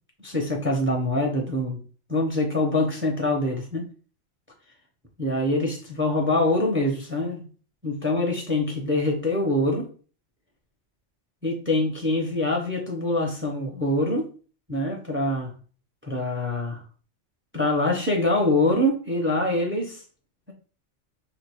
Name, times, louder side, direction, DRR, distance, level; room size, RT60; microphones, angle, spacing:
voice 1, 0.2-1.8 2.1-3.9 5.2-7.4 7.8-9.9 11.4-14.3 14.7-15.5 16.0-16.8 17.5-20.0, left 1 dB, 10° right, 0.8 m, -24 dB
5.0 x 2.2 x 4.5 m
omnidirectional pair, 1.2 m